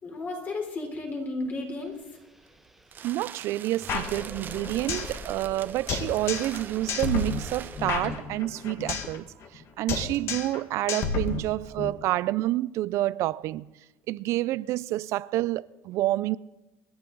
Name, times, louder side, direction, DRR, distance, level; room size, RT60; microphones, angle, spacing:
voice 1, 0.0-1.9, left 2 dB, 30° left, 3.9 m, -33 dB
sound 1, 1.4-1.5 1.7-10.5, equal, 5° right, 1.0 m, -46 dB
sound 2, 2.4-8.1, right 8 dB, 35° right, 0.8 m, -43 dB
voice 2, 3.0-13.7 14.1-16.4, right 16 dB, 60° right, 0.4 m, -28 dB
sound 3, 3.9-5.2 5.4-5.5 5.9-6.6 6.9-9.2 9.4-9.6 9.9-10.6 10.9-11.9, left 5 dB, 50° left, 1.7 m, -31 dB
27.0 x 10.5 x 3.9 m
cardioid pair, 135°, 6 cm